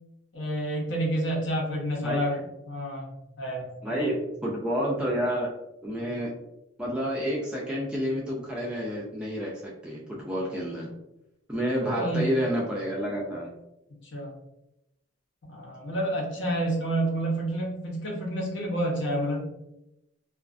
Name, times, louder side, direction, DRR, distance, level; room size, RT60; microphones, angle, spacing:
voice 1, 0.3-2.4 2.7-3.1 3.4-3.7 4.0-4.1 11.8-12.3 14.0-14.3 15.4-19.4, right 1 dB, 60° left, -2 dB, 0.8 m, -29 dB
voice 2, 3.8-4.2 4.4-5.5 5.8-6.3 6.8-10.9 11.5-13.5, equal, 5° right, -5 dB, 0.3 m, -29 dB
2.3 x 2.3 x 2.4 m, 0.87 s
head